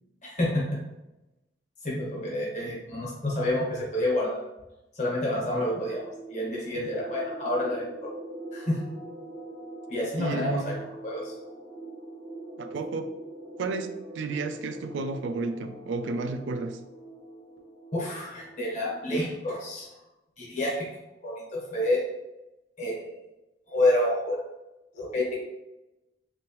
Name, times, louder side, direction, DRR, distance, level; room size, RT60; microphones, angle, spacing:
voice 1, 0.2-0.8 1.8-4.4 4.9-7.9 8.5-8.8 9.9-11.3 17.9-19.9 20.4-20.9 21.2-22.0 22.8-23.2 23.7-24.4 24.9-25.4, left 1 dB, 45° left, -4 dB, 1.2 m, -28 dB
sound 1, 5.3-19.6, right 1 dB, 75° right, 0.9 m, -43 dB
voice 2, 10.2-10.8 12.6-13.1 13.6-16.8, right 3 dB, 90° right, 9 dB, 0.4 m, -32 dB
3.4 x 3.1 x 3.0 m, 0.96 s
head